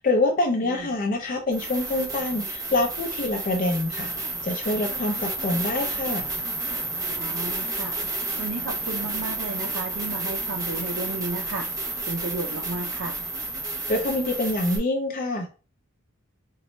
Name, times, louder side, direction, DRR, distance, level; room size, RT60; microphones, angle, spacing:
voice 1, 0.0-4.1 4.4-6.3 13.9-15.5, left 2 dB, 40° left, 3 dB, 0.4 m, -25 dB
sound 1, 0.8-0.9 1.5-14.8, right 2 dB, 15° right, 0.6 m, -31 dB
voice 2, 7.2-8.0 8.4-11.7 12.1-13.2, right 2 dB, 65° right, 2 dB, 0.5 m, -33 dB
4.0 x 2.2 x 3.0 m, 0.35 s
head